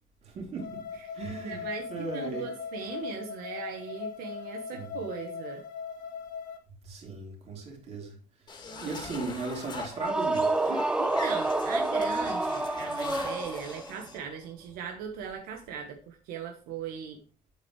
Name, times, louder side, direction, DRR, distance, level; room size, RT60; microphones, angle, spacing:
voice 1, 0.2-0.8 1.1-2.5 4.7-5.0 6.8-8.2 8.5-10.5, right 3 dB, 45° right, 3.4 m, -37 dB
sound 1, 0.6-6.6, left 6 dB, 60° left, 1.8 m, -39 dB
voice 2, 1.4-5.6 10.7-17.2, right 6 dB, 90° right, 1.4 m, -39 dB
sound 2, 8.5-14.2, left 4 dB, 30° left, 2.1 m, -42 dB
sound 3, 9.9-13.9, right 2 dB, 5° right, 0.4 m, -28 dB
8.5 x 8.1 x 3.2 m
cardioid pair, 160°, 15 cm